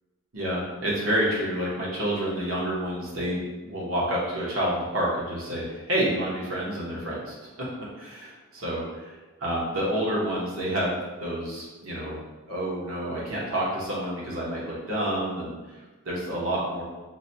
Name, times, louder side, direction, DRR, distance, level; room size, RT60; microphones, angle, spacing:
voice 1, 0.3-7.4 8.0-12.2 12.5-16.8, right 1 dB, 75° right, -5 dB, 1.0 m, -29 dB
5.7 x 2.2 x 2.7 m, 1.2 s
head